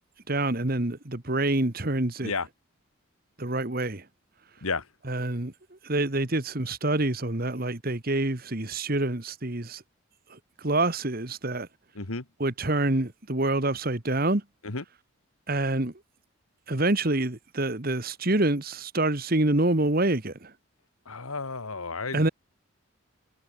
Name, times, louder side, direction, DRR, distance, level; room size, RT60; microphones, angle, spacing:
voice 1, 0.3-2.3 3.4-4.0 5.0-5.5 5.8-9.8 10.3-11.7 12.4-14.4 15.5-15.9 16.7-20.5 22.1-22.3, right 2 dB, 45° right, 1.6 m, -26 dB
voice 2, 21.1-22.3, left 4 dB, 85° left, 1.9 m, -32 dB
head